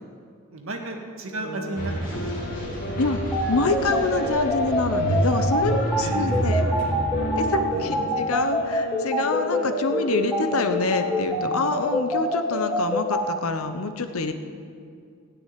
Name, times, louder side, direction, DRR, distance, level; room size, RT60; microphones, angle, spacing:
voice 1, 0.5-2.7 6.0-6.5 7.7-8.1, right 2 dB, 75° right, 2 dB, 1.8 m, -34 dB
sound 1, 1.2-6.6 7.1-12.0, left 1 dB, 55° left, 1.1 m, -36 dB
sound 2, 1.8-8.0, right 1 dB, 40° left, 3.3 m, -28 dB
sound 3, 3.3-13.2, left 1 dB, 5° left, 1.7 m, -25 dB
voice 2, 3.5-6.7 7.4-14.3, left 3 dB, 85° left, 8 dB, 0.9 m, -26 dB
16.0 x 6.2 x 9.6 m, 2.2 s
head